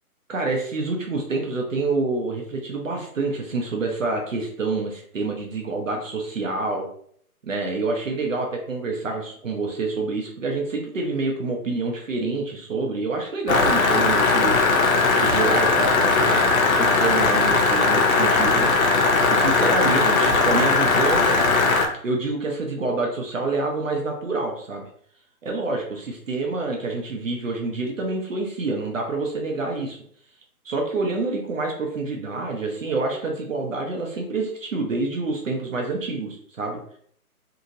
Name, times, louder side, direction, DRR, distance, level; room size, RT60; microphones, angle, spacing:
voice 1, 0.3-6.9 7.4-14.6 15.2-19.0 19.3-21.4 22.0-24.9 25.4-30.0 30.6-37.0, right 3 dB, 60° right, 1 dB, 0.7 m, -27 dB
sound 1, 13.5-21.9, left 3 dB, 65° left, 0.7 m, -19 dB
2.8 x 2.6 x 2.7 m, 0.62 s
hypercardioid pair, 170°, 45 cm